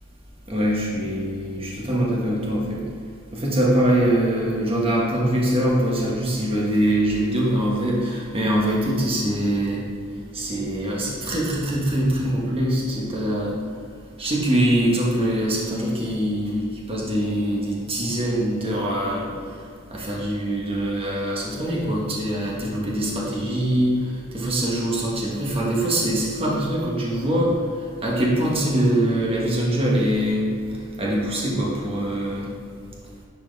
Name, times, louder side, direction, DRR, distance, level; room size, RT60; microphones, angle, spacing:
voice 1, 0.5-2.8 3.3-9.8 10.3-13.5 14.2-19.3 19.9-24.0 24.3-27.5 28.0-30.4 31.0-32.5, right 1 dB, 25° right, -4 dB, 1.3 m, -23 dB
10.5 x 4.7 x 3.4 m, 2.4 s
head